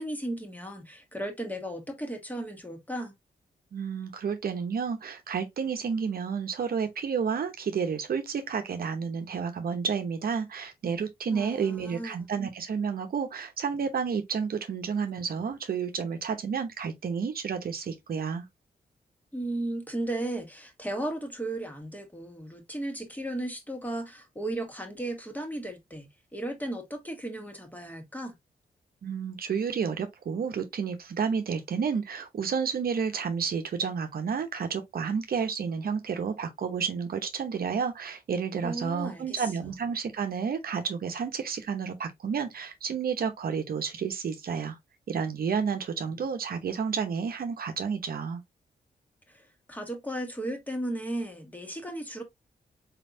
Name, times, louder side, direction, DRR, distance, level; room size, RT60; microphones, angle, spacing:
voice 1, 0.0-3.1 11.3-12.2 19.3-28.3 38.6-39.7 49.3-52.2, right 1 dB, 10° left, 1.6 m, -35 dB
voice 2, 3.7-18.5 29.0-44.8 45.1-48.4, right 6 dB, 65° right, 0.9 m, -31 dB
4.4 x 3.4 x 2.6 m
cardioid pair, 65°, 16 cm